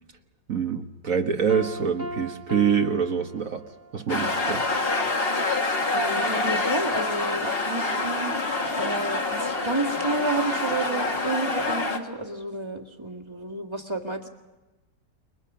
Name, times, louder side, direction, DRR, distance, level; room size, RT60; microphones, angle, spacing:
voice 1, 0.5-3.6 3.9-4.6, right 7 dB, 50° right, 5 dB, 1.5 m, -25 dB
Piano, 1.5-4.0, right 1 dB, 10° left, 1.4 m, -38 dB
sound 1, 4.1-12.0, left 2 dB, 35° left, 1.9 m, -26 dB
voice 2, 5.9-8.4 8.8-14.3, right 2 dB, 15° right, 0 dB, 1.8 m, -31 dB
29.0 x 22.5 x 5.6 m, 1.1 s
omnidirectional pair, 1.9 m